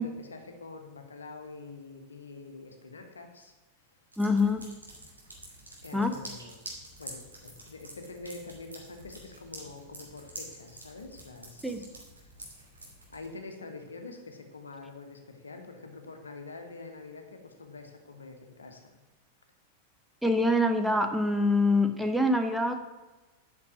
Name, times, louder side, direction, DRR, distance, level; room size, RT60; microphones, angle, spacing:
voice 1, 0.0-3.5 5.8-6.6 7.0-11.9 12.2-12.3 13.1-18.9, left 3 dB, 75° left, 5 dB, 1.5 m, -45 dB
sound 1, 4.1-13.2, right 1 dB, 80° right, 2.7 m, -47 dB
voice 2, 4.2-4.6 5.9-6.1 11.6-11.9 20.2-22.8, left 1 dB, ahead, 5 dB, 0.8 m, -25 dB
8.6 x 6.1 x 7.5 m, 1.2 s
figure-of-eight pair, 90°, 0 cm